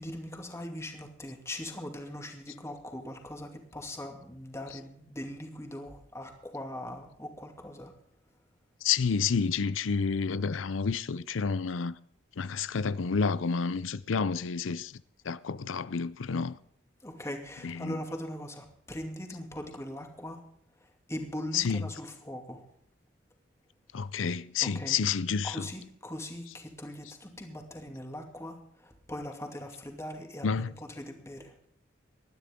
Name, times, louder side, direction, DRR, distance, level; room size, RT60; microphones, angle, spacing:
voice 1, 0.0-7.9 17.0-20.5 20.8-22.7 24.6-25.0 25.4-31.5, left 1 dB, 15° left, 2.5 m, -40 dB
voice 2, 8.8-11.9 12.4-16.6 17.6-18.0 21.5-21.9 23.9-25.7 26.5-26.6 30.4-30.7, left 5 dB, 85° left, 0.6 m, -30 dB
20.5 x 13.0 x 3.8 m
head